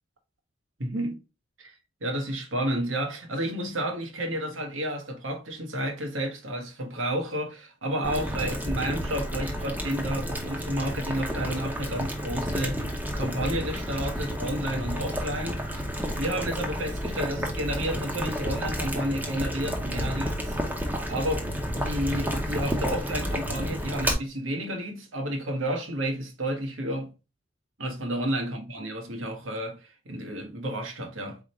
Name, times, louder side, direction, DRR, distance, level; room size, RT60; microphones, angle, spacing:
voice 1, 0.8-1.2 1.6-1.7 2.0-20.6 21.1-21.5 21.7-27.1 27.8-31.4, right 1 dB, 80° right, 1.3 m, -31 dB
Boiling, 8.0-24.1, equal, 10° right, 0.7 m, -31 dB
4.3 x 3.6 x 3.0 m
head